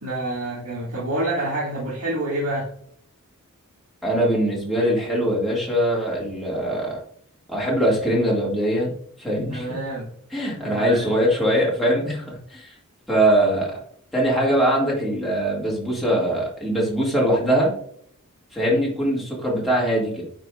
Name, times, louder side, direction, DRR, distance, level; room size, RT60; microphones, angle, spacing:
voice 1, 0.0-2.7 9.5-10.1 10.6-11.1, right 1 dB, 75° right, -7 dB, 2.0 m, -27 dB
voice 2, 4.0-7.0 7.5-8.9 9.2-9.8 10.3-12.2 12.5-12.7 13.1-13.8 14.1-17.7 18.5-20.2, right 1 dB, ahead, -5 dB, 2.1 m, -22 dB
9.2 x 4.9 x 2.4 m, 0.64 s
head